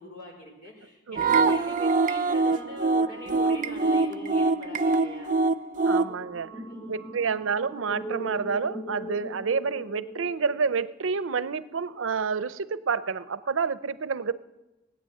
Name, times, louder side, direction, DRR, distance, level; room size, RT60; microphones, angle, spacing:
voice 1, 0.0-5.4 6.7-6.9 7.2-7.3, equal, 45° left, 0 dB, 4.9 m, -43 dB
sound 1, 1.2-6.1, right 3 dB, 40° right, 0.4 m, -24 dB
sound 2, 1.4-10.8, right 1 dB, 10° left, 3.1 m, -38 dB
voice 2, 5.8-6.5 6.9-14.3, right 5 dB, 90° right, 15 dB, 0.6 m, -29 dB
19.0 x 9.6 x 7.8 m, 1.0 s
head